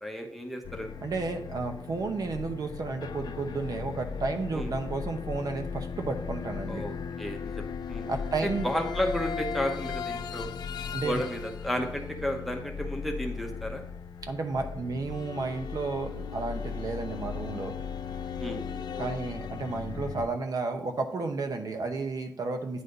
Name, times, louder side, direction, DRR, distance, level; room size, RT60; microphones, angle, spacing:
voice 1, 0.0-0.9 4.5-4.7 6.7-8.1 8.4-10.5 11.0-13.8 18.4-18.8, equal, ahead, 3 dB, 1.0 m, -33 dB
sound 1, 0.6-20.3, left 6 dB, 65° left, 0.5 m, -37 dB
voice 2, 1.0-6.8 8.1-8.7 10.9-11.2 14.2-17.8 19.0-22.8, right 3 dB, 55° right, 5 dB, 0.8 m, -32 dB
9.5 x 4.2 x 5.1 m, 0.71 s
wide cardioid pair, 180°, 8 cm